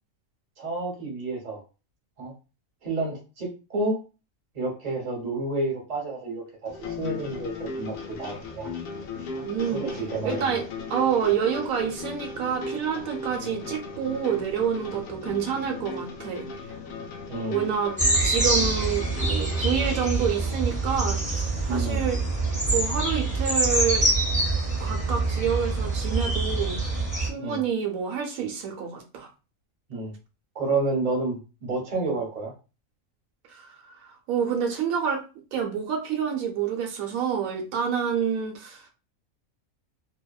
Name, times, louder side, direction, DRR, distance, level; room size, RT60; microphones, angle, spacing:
voice 1, 0.6-1.6 2.2-2.3 2.8-4.0 4.5-8.7 9.7-10.5 17.3-17.6 21.7-22.0 27.4-27.6 29.9-30.1 30.5-32.5, right 2 dB, 35° right, 0 dB, 0.8 m, -30 dB
sound 1, 6.6-20.5, left 3 dB, 70° left, 1.0 m, -37 dB
voice 2, 9.4-9.8 10.2-10.6 10.9-16.5 17.5-17.9 18.2-22.2 22.7-24.1 24.8-26.8 27.2-29.3 33.5-33.8 34.0-35.2 35.5-38.9, right 7 dB, 80° right, 2 dB, 1.0 m, -28 dB
sound 2, 18.0-27.3, right 2 dB, 10° right, 0.5 m, -25 dB
2.8 x 2.1 x 2.3 m, 0.31 s
omnidirectional pair, 1.4 m